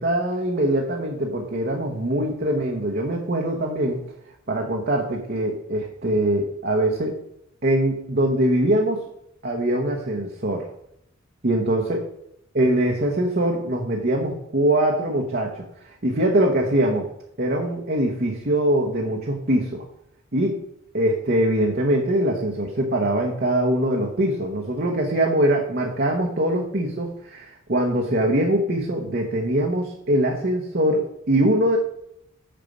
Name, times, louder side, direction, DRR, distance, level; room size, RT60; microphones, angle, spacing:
voice 1, 0.0-4.0 4.5-7.1 7.6-9.0 9.4-10.7 11.4-12.0 12.5-17.1 17.4-19.8 20.3-20.6 20.9-31.8, right 1 dB, 45° right, 0 dB, 1.0 m, -22 dB
6.8 x 6.6 x 5.3 m, 0.76 s
head